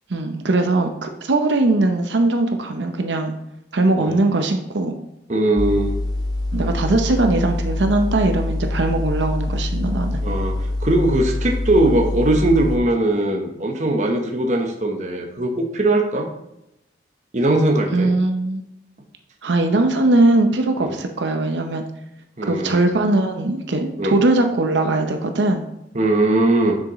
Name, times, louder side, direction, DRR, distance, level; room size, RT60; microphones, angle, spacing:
voice 1, 0.1-3.3 3.7-4.9 6.5-10.2 17.9-18.6 19.4-21.8 22.5-25.6, right 2 dB, 85° right, 5 dB, 0.7 m, -20 dB
voice 2, 5.3-5.9 10.2-16.3 17.3-18.1 20.8-20.9 22.4-22.8 24.0-24.2 25.9-26.8, right 1 dB, 40° right, 2 dB, 1.0 m, -20 dB
sound 1, 5.6-12.8, left 1 dB, 25° left, 0.7 m, -25 dB
7.5 x 6.3 x 3.1 m, 0.86 s
head